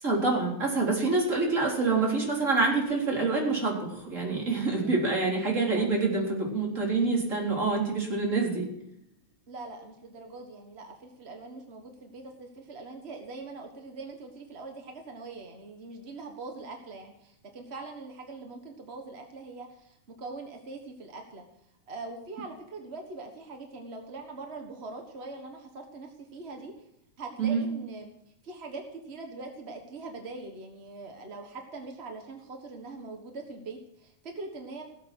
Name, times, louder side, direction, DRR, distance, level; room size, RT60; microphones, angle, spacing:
voice 1, 0.0-8.7 27.4-27.7, right 3 dB, 25° right, -2 dB, 4.0 m, -26 dB
voice 2, 9.5-21.4 21.9-26.7 27.2-28.1 28.4-34.8, right 3 dB, 40° right, 3 dB, 0.9 m, -42 dB
17.5 x 8.1 x 6.2 m, 0.78 s
omnidirectional pair, 3.3 m